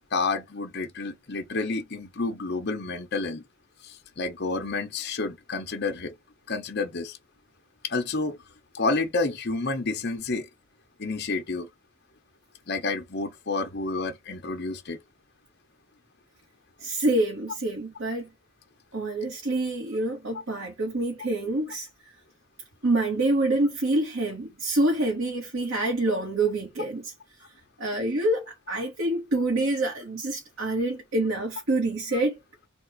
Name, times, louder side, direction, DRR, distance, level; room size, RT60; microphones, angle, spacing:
voice 1, 0.1-3.4 3.8-6.1 6.5-7.2 7.8-8.4 8.7-10.5 11.0-11.7 12.7-15.0, left 3 dB, 50° left, 0.9 m, -29 dB
voice 2, 16.8-18.3 18.9-21.9 22.8-27.1 27.8-32.4, right 2 dB, 75° right, 1.4 m, -26 dB
3.8 x 2.4 x 4.5 m
head